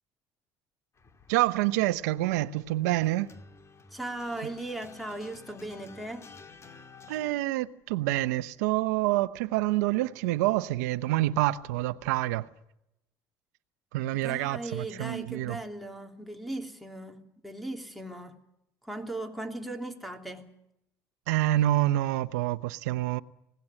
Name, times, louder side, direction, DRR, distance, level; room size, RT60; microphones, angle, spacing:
sound 1, 1.0-7.3, left 4 dB, 35° left, 2.5 m, -52 dB
voice 1, 1.3-3.3 7.1-12.5 13.9-15.6 21.3-23.2, right 16 dB, 90° right, 0.9 m, -27 dB
voice 2, 3.9-6.3 14.1-18.4 18.8-20.5, right 2 dB, ahead, 3.1 m, -38 dB
20.5 x 17.5 x 9.7 m
supercardioid pair, 90°, 9 cm